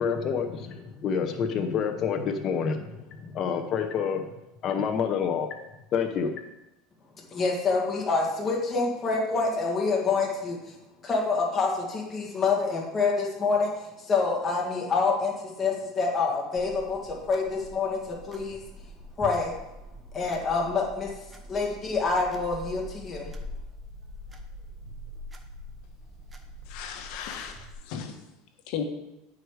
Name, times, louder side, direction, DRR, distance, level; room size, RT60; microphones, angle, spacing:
voice 1, 0.0-4.2 4.6-5.5 5.9-6.3, left 6 dB, 35° left, 5 dB, 0.8 m, -28 dB
voice 2, 7.3-10.7 11.0-13.7 14.0-18.6 19.2-19.5 20.1-21.1 21.5-23.3, left 4 dB, 20° left, -3 dB, 1.8 m, -27 dB
Small Clock Ticking, 16.6-27.7, equal, 15° right, 0.9 m, -44 dB
voice 3, 26.7-28.1 28.7-28.8, left 8 dB, 65° left, 6 dB, 1.2 m, -35 dB
9.3 x 4.8 x 4.8 m, 0.95 s
supercardioid pair, 130°, 0 cm